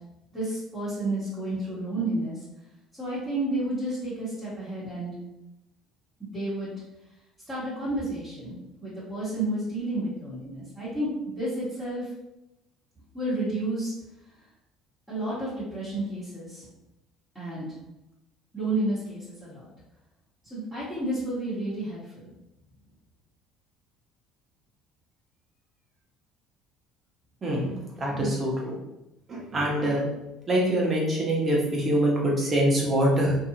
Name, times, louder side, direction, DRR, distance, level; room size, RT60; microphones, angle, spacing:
voice 1, 0.3-2.4 3.0-5.1 6.2-6.7 7.5-8.6 8.8-11.1 11.4-12.1 13.1-13.9 15.1-16.7 17.3-17.7 18.5-19.6 20.5-22.3, right 1 dB, 10° left, -13 dB, 1.3 m, -31 dB
voice 2, 27.4-27.7 28.0-28.8 29.3-30.0 30.5-33.4, right 1 dB, 25° right, -3 dB, 1.0 m, -24 dB
2.7 x 2.5 x 2.8 m, 0.92 s
cardioid pair, 115°, 0 cm